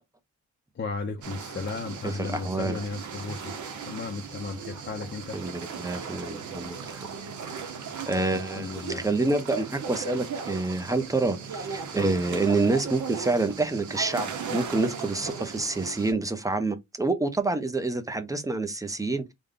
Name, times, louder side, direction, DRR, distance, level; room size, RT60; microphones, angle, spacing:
voice 1, 0.8-3.6 3.8-5.4 8.3-9.1, left 4 dB, 40° left, 0.5 m, -35 dB
sound 1, 1.2-16.1, right 6 dB, 80° right, 0.8 m, -37 dB
voice 2, 2.0-2.8 5.3-7.1 7.6-7.8 8.1-19.3, right 3 dB, 10° right, 0.5 m, -28 dB
3.5 x 2.1 x 3.7 m
wide cardioid pair, 150°, 29 cm